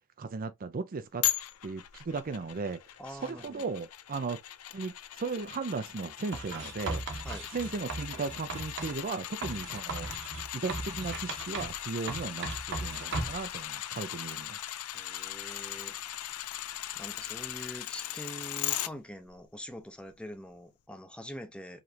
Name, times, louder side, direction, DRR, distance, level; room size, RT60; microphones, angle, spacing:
voice 1, 0.2-1.2 1.6-2.8 3.1-4.4 4.7-7.0 7.5-10.1 10.5-12.5 12.8-14.6, right 4 dB, 40° right, 0.5 m, -36 dB
sound 1, 1.2-18.9 19.3-19.4, left 13 dB, 70° left, 0.5 m, -38 dB
voice 2, 3.0-3.7 7.2-7.5 14.9-16.0 17.0-21.8, equal, 5° left, 0.7 m, -44 dB
Writing, 6.3-9.0 9.4-11.8 12.1-13.5, right 3 dB, 55° right, 1.1 m, -37 dB
4.8 x 3.1 x 2.7 m
head